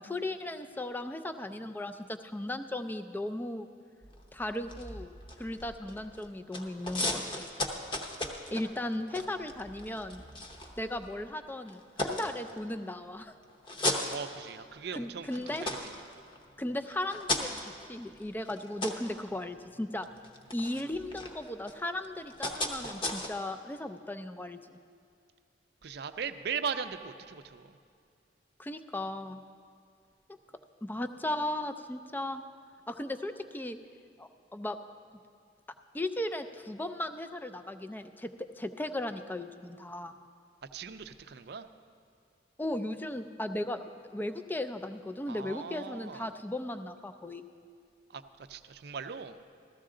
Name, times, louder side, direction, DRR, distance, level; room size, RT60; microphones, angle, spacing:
voice 1, 0.0-3.7 4.3-7.5 8.5-10.2 10.8-13.3 14.9-15.6 16.6-20.1 20.5-24.8 28.6-29.4 30.8-32.4 32.9-33.8 34.2-34.8 35.9-40.2 42.6-43.8 44.1-47.4, left 1 dB, 10° left, 9 dB, 0.3 m, -36 dB
sound 1, 4.0-6.3 6.5-11.2 11.7-12.9 13.4-14.9 15.2-23.3, left 1 dB, 25° left, 0.8 m, -37 dB
voice 2, 14.1-16.0 25.8-27.8 40.7-41.7 45.3-46.4 48.1-49.4, right 6 dB, 60° right, 10 dB, 0.5 m, -39 dB
14.5 x 13.5 x 3.8 m, 2.2 s
head